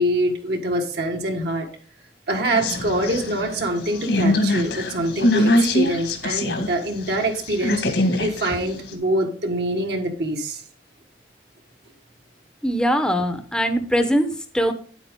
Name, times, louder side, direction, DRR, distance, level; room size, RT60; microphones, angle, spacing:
voice 1, 0.0-1.7 2.3-10.6, right 1 dB, 65° right, 2 dB, 1.6 m, -25 dB
sound 1, 2.6-6.7 7.1-8.9, left 1 dB, 70° left, 1.7 m, -23 dB
voice 2, 12.6-14.7, equal, 5° left, 7 dB, 0.8 m, -21 dB
9.2 x 8.2 x 3.6 m, 0.41 s
head